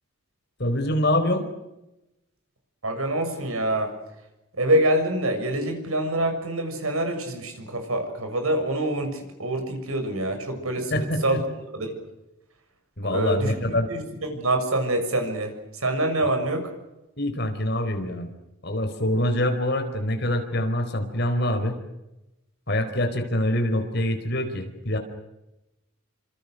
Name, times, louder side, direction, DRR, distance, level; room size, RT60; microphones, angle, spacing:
voice 1, 0.6-1.4 10.9-11.4 13.0-13.9 17.2-18.3 18.6-21.8 22.7-25.0, left 1 dB, 50° left, 7 dB, 4.6 m, -25 dB
voice 2, 2.8-3.9 4.6-10.9 11.2-11.4 11.7-11.9 13.1-14.0 14.3-16.7, right 1 dB, 90° right, 5 dB, 6.8 m, -25 dB
28.5 x 26.0 x 6.7 m, 0.96 s
head